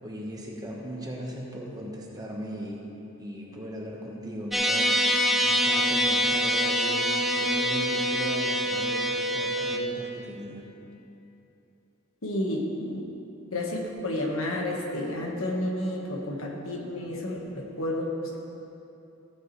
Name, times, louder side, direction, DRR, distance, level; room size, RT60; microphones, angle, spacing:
voice 1, 0.0-2.8 3.2-4.9 5.4-7.1 7.4-10.6, equal, 20° right, -2 dB, 1.2 m, -38 dB
sound 1, 4.5-9.8, equal, ahead, 0.5 m, -25 dB
voice 2, 12.2-13.0 13.5-18.4, left 1 dB, 75° left, 0 dB, 1.4 m, -31 dB
15.0 x 8.0 x 3.2 m, 2.9 s
head